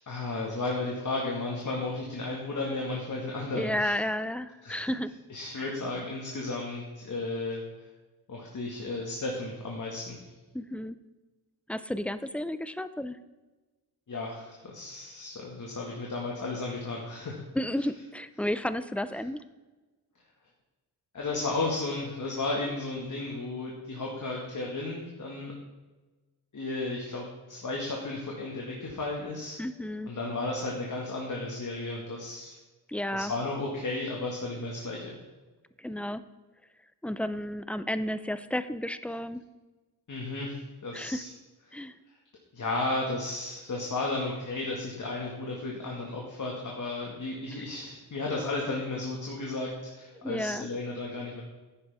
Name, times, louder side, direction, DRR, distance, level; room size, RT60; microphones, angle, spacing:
voice 1, 0.1-3.9 4.7-4.9 5.3-7.6 8.3-10.2 14.1-17.4 21.1-25.5 26.5-29.6 30.1-32.6 33.1-35.1 40.1-41.3 41.7-41.8 42.5-51.4, left 2 dB, 45° left, -2 dB, 1.9 m, -34 dB
voice 2, 3.5-5.1 5.6-5.8 10.5-11.0 11.7-13.2 17.5-19.4 29.6-30.1 32.9-33.3 35.8-36.2 37.0-39.4 40.9-41.2 41.7-42.0 47.5-47.6 50.2-50.7, left 1 dB, 5° left, 13 dB, 0.4 m, -32 dB
11.0 x 9.6 x 3.6 m, 1.2 s
wide cardioid pair, 105°, 41 cm